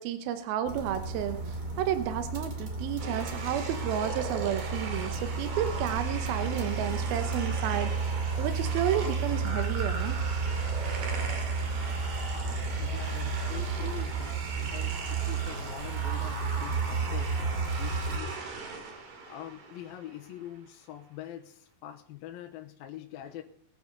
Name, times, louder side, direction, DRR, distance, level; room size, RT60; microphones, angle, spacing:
voice 1, 0.0-8.1 8.4-10.2, right 10 dB, 80° right, 9 dB, 2.7 m, -32 dB
sound 1, 0.6-18.2, right 4 dB, 30° right, 2.4 m, -32 dB
sound 2, 3.0-20.3, right 4 dB, 65° right, 3.7 m, -39 dB
voice 2, 11.5-18.4 19.2-23.4, left 12 dB, 75° left, 4 dB, 2.7 m, -44 dB
21.5 x 9.0 x 3.9 m, 0.62 s
omnidirectional pair, 4.3 m